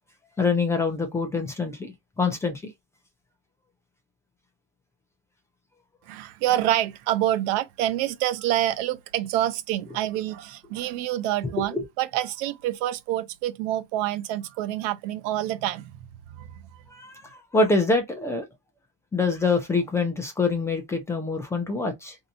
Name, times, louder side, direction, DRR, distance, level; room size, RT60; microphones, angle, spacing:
voice 1, 0.4-2.7 11.6-11.8 16.9-18.5 19.1-22.2, left 3 dB, 10° left, 0.4 m, -25 dB
voice 2, 6.1-16.0 16.3-16.8, right 13 dB, 75° right, 0.6 m, -27 dB
4.3 x 2.7 x 2.5 m
cardioid pair, 175°, 32 cm